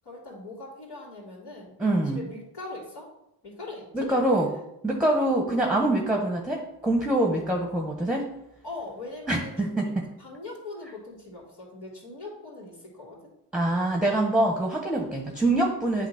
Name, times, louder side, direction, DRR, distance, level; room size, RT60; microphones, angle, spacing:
voice 1, 0.0-1.7 2.0-3.1 3.4-4.1 8.6-9.9 10.2-13.2, left 2 dB, 60° left, -6 dB, 3.0 m, -41 dB
voice 2, 1.8-2.2 3.9-4.5 4.8-8.3 9.3-9.8 13.5-16.1, right 1 dB, ahead, 0 dB, 1.3 m, -24 dB
8.3 x 3.0 x 5.9 m, 0.82 s
supercardioid pair, 55°, 44 cm